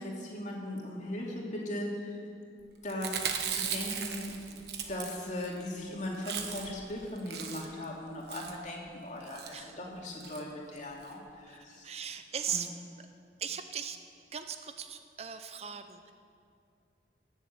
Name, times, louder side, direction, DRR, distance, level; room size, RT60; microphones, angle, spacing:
voice 1, 0.0-2.2 2.8-4.4 4.9-11.9 12.5-12.6, left 1 dB, 45° left, -2 dB, 2.5 m, -38 dB
Chewing mastication, 2.9-5.5 5.8-5.9 6.1-6.8 7.2-7.8 8.3-8.6 9.2-9.5 10.2-10.4 10.8-10.9 11.0-11.1, right 7 dB, 70° right, 1.2 m, -37 dB
voice 2, 11.8-12.7 13.4-14.0 14.3-16.1, right 8 dB, 35° right, 8 dB, 0.5 m, -38 dB
18.0 x 7.3 x 7.6 m, 2.4 s
head